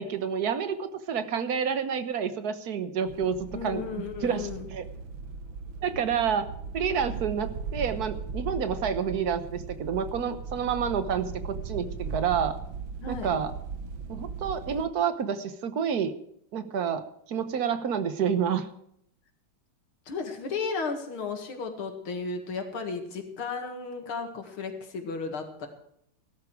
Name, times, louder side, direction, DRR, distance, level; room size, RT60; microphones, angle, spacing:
voice 1, 0.0-4.8 5.8-6.4 6.7-12.6 13.1-13.5 14.1-16.1 16.5-17.0 17.3-18.7, right 7 dB, 55° right, 11 dB, 1.4 m, -29 dB
sound 1, 3.1-14.9, right 5 dB, 70° right, 1.8 m, -38 dB
voice 2, 3.5-4.7 13.0-13.3 20.1-25.7, left 4 dB, 90° left, 5 dB, 2.8 m, -34 dB
16.0 x 13.5 x 4.7 m, 0.72 s
omnidirectional pair, 2.2 m